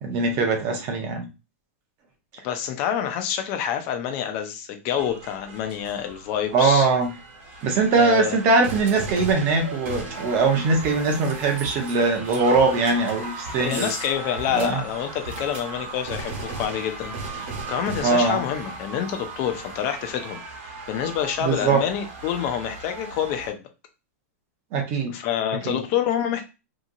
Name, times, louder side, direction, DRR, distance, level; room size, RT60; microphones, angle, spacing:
voice 1, 0.0-1.3 6.5-7.1 7.6-13.9 14.5-14.8 18.0-18.4 21.4-21.8 24.7-25.1 25.6-25.8, right 3 dB, 25° right, 4 dB, 0.6 m, -21 dB
voice 2, 2.4-6.9 7.9-8.4 13.6-23.6 25.1-26.4, left 9 dB, 25° left, 6 dB, 0.4 m, -27 dB
sound 1, 5.0-23.5, right 3 dB, 45° right, 1.1 m, -36 dB
2.8 x 2.7 x 2.5 m, 0.29 s
supercardioid pair, 175°, 8 cm